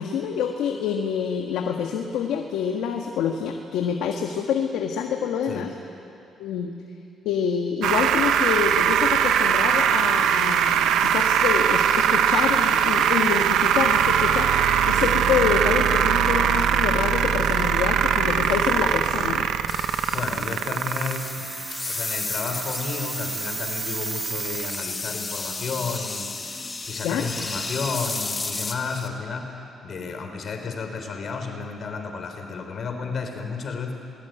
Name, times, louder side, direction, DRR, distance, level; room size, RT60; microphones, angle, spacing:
voice 1, 0.0-5.7 6.4-6.7 7.2-19.5 27.0-27.3, left 7 dB, 90° left, 3 dB, 1.6 m, -27 dB
sound 1, 7.8-24.8, right 9 dB, 85° right, 1.2 m, -22 dB
sound 2, 19.7-29.1, left 3 dB, 25° left, 2.1 m, -33 dB
voice 2, 20.1-33.9, left 4 dB, 55° left, 4 dB, 3.8 m, -32 dB
27.5 x 20.5 x 9.2 m, 2.7 s
cardioid pair, 90°, 0 cm